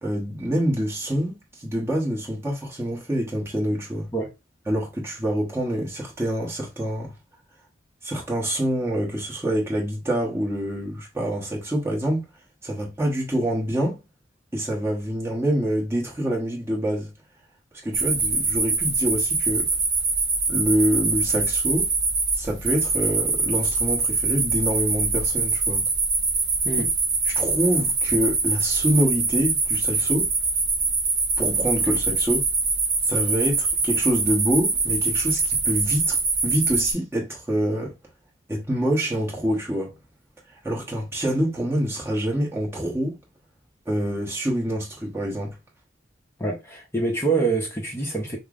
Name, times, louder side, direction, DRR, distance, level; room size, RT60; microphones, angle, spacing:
voice 1, 0.0-4.1 4.7-7.1 8.0-12.3 12.6-14.0 14.5-17.1 17.8-19.7 20.5-21.9 22.4-25.8 27.3-30.3 31.4-32.4 33.1-37.9 38.5-39.9 40.6-43.2 43.9-45.5, equal, 15° right, 1.0 m, -26 dB
sound 1, 17.9-36.9, right 3 dB, 45° right, 1.2 m, -24 dB
voice 2, 46.4-48.4, right 3 dB, 15° left, 0.6 m, -25 dB
5.3 x 2.0 x 2.4 m
head